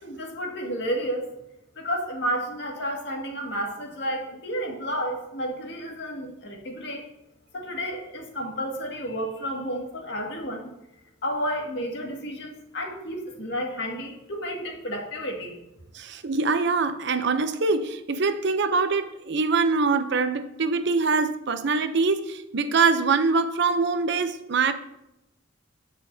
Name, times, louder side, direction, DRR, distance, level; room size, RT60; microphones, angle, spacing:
voice 1, 0.0-1.3 1.8-7.0 7.5-10.7 11.2-15.6, equal, 60° left, 2.0 m, -31 dB
voice 2, 15.9-24.7, right 4 dB, 60° right, 0.6 m, -24 dB
18.5 x 6.3 x 2.7 m
head